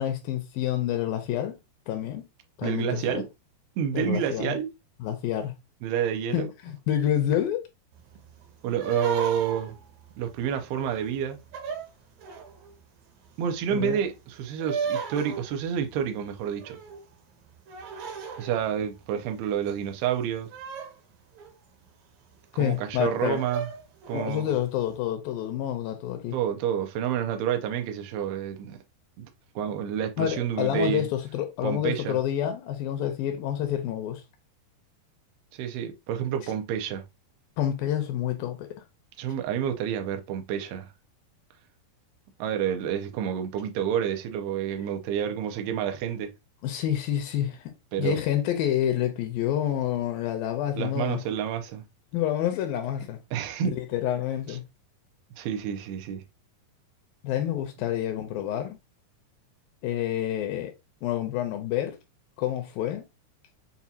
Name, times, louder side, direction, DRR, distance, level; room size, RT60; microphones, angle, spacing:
voice 1, 0.0-1.6 1.9-2.2 2.6-3.2 3.9-4.6 5.0-5.5 6.3-7.6 13.7-14.0 22.6-23.4 24.1-26.4 30.2-34.2 37.6-38.7 46.6-47.7 48.0-51.2 52.1-53.2 53.6-54.6 57.2-58.8 59.8-60.7 61.0-62.0 62.4-63.0, left 11 dB, 80° left, 2.2 m, -28 dB
voice 2, 2.6-3.3 3.8-4.7 5.8-6.5 8.6-9.8 10.2-11.4 13.4-16.8 18.4-20.5 22.6-23.7 24.1-24.5 26.3-28.8 29.2-29.3 29.6-31.1 31.6-32.2 35.6-37.0 39.2-40.9 42.4-46.3 47.9-48.2 50.8-51.8 53.3-53.8 54.5-54.6 55.4-56.2, right 9 dB, 90° right, 2.7 m, -29 dB
sound 1, 7.9-12.7 13.2-19.9 20.2-21.9 22.4-22.5 22.9-23.0 23.3-24.5, right 6 dB, 70° right, 1.8 m, -37 dB
7.0 x 2.4 x 2.7 m
omnidirectional pair, 4.4 m